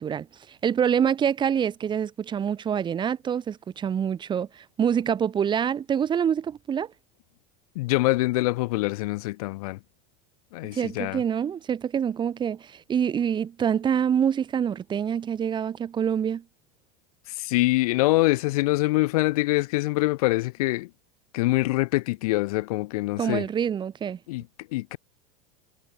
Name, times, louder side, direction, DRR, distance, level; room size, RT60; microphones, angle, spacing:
voice 1, 0.0-6.9 10.6-16.4 23.2-24.2, right 8 dB, 25° right, 1.3 m, -26 dB
voice 2, 7.8-9.8 10.5-11.2 17.4-20.9 21.3-23.4 24.3-24.4 24.7-25.0, left 20 dB, 75° left, 0.4 m, -24 dB
supercardioid pair, 120°, 19 cm